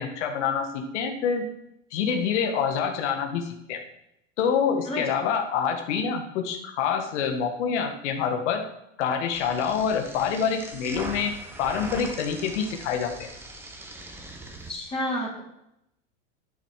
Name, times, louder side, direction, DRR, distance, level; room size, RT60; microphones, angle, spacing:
voice 1, 0.0-1.5 1.9-3.8 4.4-8.6 9.0-13.3, left 7 dB, 65° left, 4 dB, 1.8 m, -26 dB
sound 1, 9.3-14.7, right 2 dB, 5° right, 1.3 m, -40 dB
voice 2, 14.7-15.4, left 1 dB, 15° left, -3 dB, 3.1 m, -30 dB
10.5 x 9.3 x 4.9 m, 0.80 s
supercardioid pair, 155°, 37 cm